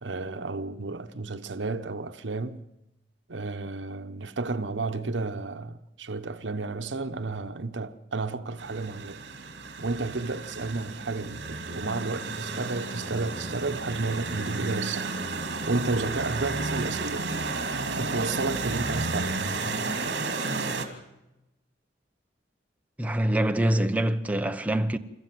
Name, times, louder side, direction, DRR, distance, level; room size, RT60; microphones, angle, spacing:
voice 1, 0.0-2.6 3.3-9.2 9.8-15.2 15.7-17.3 18.0-19.4, right 3 dB, 85° right, 1.0 m, -32 dB
sound 1, 8.6-20.8, right 3 dB, 65° right, 2.9 m, -32 dB
voice 2, 23.0-25.0, right 1 dB, 10° right, 1.0 m, -25 dB
29.5 x 14.0 x 7.7 m
head